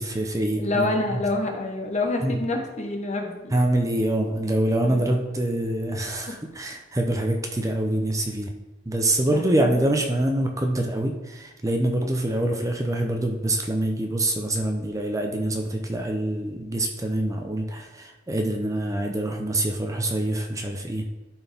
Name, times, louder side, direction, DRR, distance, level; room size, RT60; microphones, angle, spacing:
voice 1, 0.0-1.2 2.2-2.4 3.5-8.5 8.9-21.1, right 1 dB, 15° right, 3 dB, 0.6 m, -25 dB
voice 2, 0.6-3.5 4.8-5.2 9.3-9.8, left 2 dB, 35° left, 3 dB, 1.2 m, -27 dB
12.5 x 4.4 x 3.5 m, 1.1 s
head